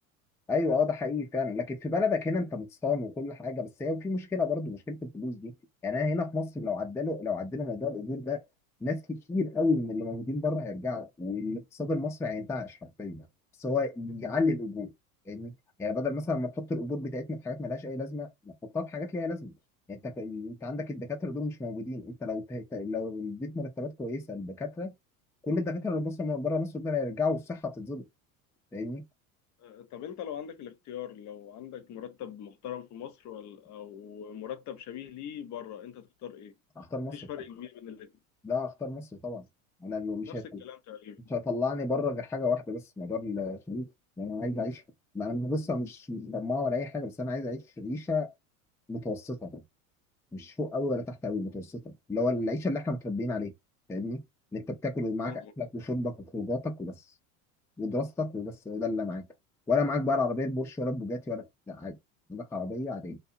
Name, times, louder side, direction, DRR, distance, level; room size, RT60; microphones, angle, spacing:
voice 1, 0.5-5.5 5.8-8.4 8.8-13.3 13.6-14.9 15.3-15.5 15.8-19.5 19.9-24.9 25.4-28.0 28.7-29.0 36.8-37.1 38.4-39.4 39.8-40.6 41.3-43.9 44.2-44.8 45.1-48.3 48.9-49.6 50.3-53.5 53.9-54.2 54.5-57.0 57.8-59.3 59.7-62.0 62.3-63.2, left 3 dB, 5° left, 0.4 m, -32 dB
voice 2, 29.6-36.6 37.1-38.1 40.2-41.3 55.2-55.5, left 9 dB, 40° left, 0.7 m, -42 dB
2.6 x 2.3 x 2.5 m
hypercardioid pair, 90°, 43 cm